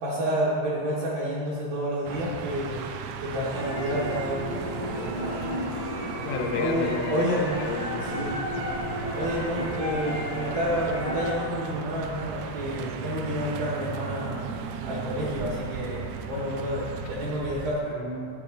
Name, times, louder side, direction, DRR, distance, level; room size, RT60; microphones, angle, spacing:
voice 1, 0.0-5.6 6.6-7.6 8.0-8.4 9.1-14.4 14.6-17.9, equal, 65° right, -9 dB, 2.5 m, -30 dB
sound 1, 2.1-17.8, right 7 dB, 90° right, 3.1 m, -37 dB
sound 2, 3.5-11.3, equal, 35° right, 1.2 m, -33 dB
voice 2, 6.1-7.3 7.6-8.2 17.9-18.3, left 4 dB, 75° left, 3 dB, 2.6 m, -32 dB
9.4 x 8.3 x 3.8 m, 2.3 s
omnidirectional pair, 5.4 m